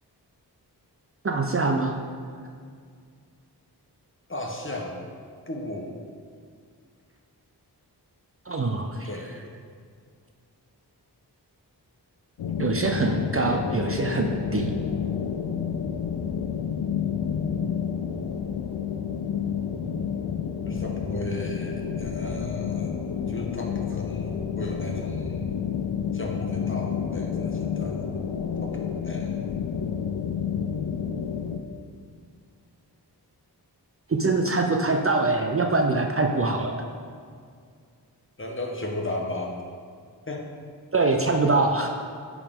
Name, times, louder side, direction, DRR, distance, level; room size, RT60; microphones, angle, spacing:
voice 1, 1.2-2.0 8.5-9.1 12.6-14.8 34.1-36.8 40.9-41.9, right 3 dB, 35° right, 3 dB, 0.5 m, -24 dB
voice 2, 4.3-5.0 5.5-5.9 9.0-9.3 20.6-23.0 23.3-25.4 26.1-28.0 28.6-29.4 38.4-39.6 40.3-40.4, left 1 dB, 30° left, 0 dB, 1.2 m, -35 dB
sound 1, 12.4-31.6, left 7 dB, 85° left, 0.6 m, -29 dB
10.0 x 4.8 x 3.7 m, 2.1 s
wide cardioid pair, 65°, 41 cm